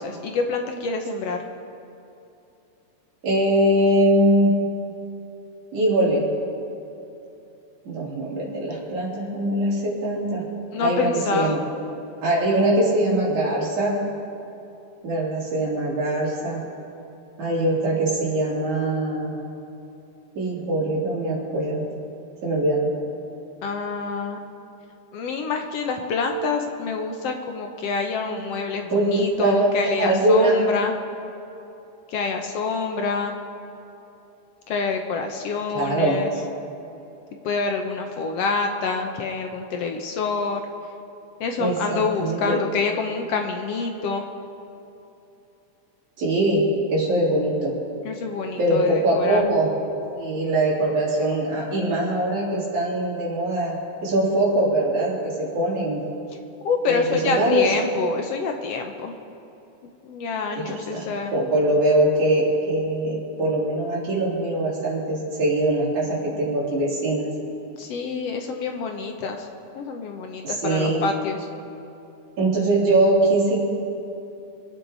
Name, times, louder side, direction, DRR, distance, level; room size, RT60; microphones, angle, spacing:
voice 1, 0.0-1.4 10.7-11.6 23.6-24.5 25.1-30.9 32.1-33.3 34.7-36.3 37.4-40.6 41.4-44.2 48.0-49.5 56.6-59.1 60.0-61.5 67.8-69.5 69.7-71.5, left 4 dB, 65° left, 4 dB, 1.7 m, -27 dB
voice 2, 3.2-4.5 5.7-6.3 7.9-10.4 10.8-11.6 12.2-14.0 15.0-16.6 17.4-19.3 20.4-21.8 22.4-22.9 28.9-30.6 35.7-36.2 41.6-42.6 46.2-47.7 48.6-49.7 50.1-53.8 54.0-56.0 56.9-57.6 60.7-67.3 70.4-71.0 72.4-73.6, right 1 dB, 70° right, -6 dB, 4.7 m, -22 dB
25.5 x 8.9 x 4.0 m, 2.9 s
omnidirectional pair, 3.4 m